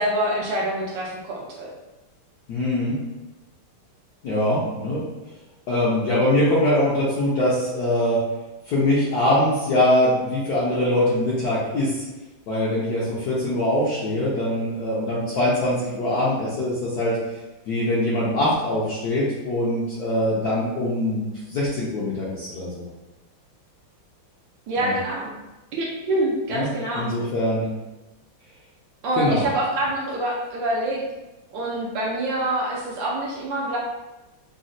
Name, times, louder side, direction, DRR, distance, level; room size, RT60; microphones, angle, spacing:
voice 1, 0.0-1.7 24.7-25.3 25.7-27.1 29.0-31.0 31.5-33.8, right 1 dB, 75° right, -4 dB, 1.1 m, -26 dB
voice 2, 2.5-3.0 4.2-5.1 5.7-8.2 8.7-12.0 12.5-17.2 17.7-22.9 24.8-24.9 26.5-26.7 26.9-27.7 29.2-29.4, left 1 dB, 70° left, -7 dB, 0.9 m, -23 dB
3.9 x 2.1 x 2.5 m, 1.1 s
omnidirectional pair, 2.3 m